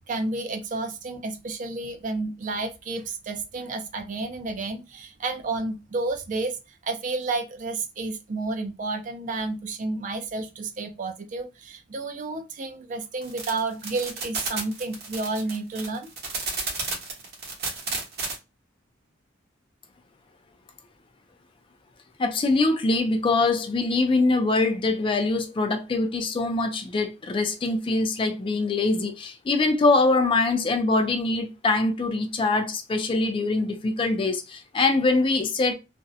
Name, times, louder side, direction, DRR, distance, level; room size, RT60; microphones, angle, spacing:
voice 1, 0.1-16.1, right 3 dB, 40° right, 0.4 m, -31 dB
sound 1, 13.2-18.3, right 4 dB, 55° right, 0.9 m, -31 dB
voice 2, 22.2-35.7, left 3 dB, 25° left, 0.3 m, -23 dB
2.5 x 2.0 x 2.5 m
head